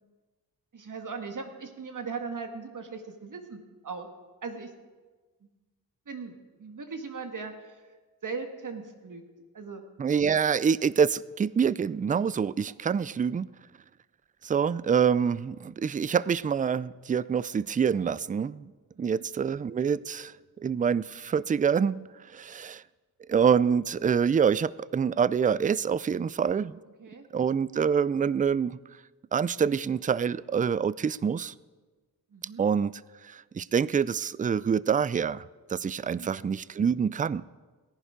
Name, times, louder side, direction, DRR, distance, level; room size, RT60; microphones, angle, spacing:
voice 1, 0.7-4.1 4.4-4.7 6.1-7.8 8.2-9.2 9.5-9.8 15.2-15.4 18.9-19.3 27.0-27.3 32.3-32.7 36.0-36.4, right 4 dB, 55° right, 1.9 m, -39 dB
voice 2, 10.0-13.5 14.4-18.7 19.0-20.3 20.6-22.1 22.3-22.8 23.3-26.7 27.3-28.7 29.3-31.5 32.6-32.9 33.2-35.4 35.7-37.4, right 7 dB, 25° right, 0.3 m, -26 dB
17.0 x 11.0 x 5.1 m
cardioid pair, 65°, 38 cm